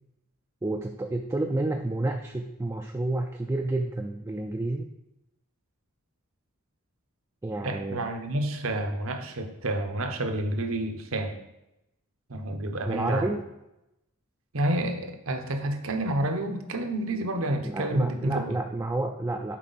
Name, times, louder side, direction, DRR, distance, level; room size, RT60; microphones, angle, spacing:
voice 1, 0.6-4.9 7.4-8.0 12.9-13.4 17.6-19.6, right 2 dB, 15° right, 4 dB, 0.3 m, -30 dB
voice 2, 7.6-11.4 12.3-13.4 14.5-18.5, right 1 dB, 65° right, 6 dB, 0.8 m, -29 dB
7.4 x 4.6 x 4.0 m, 0.90 s
head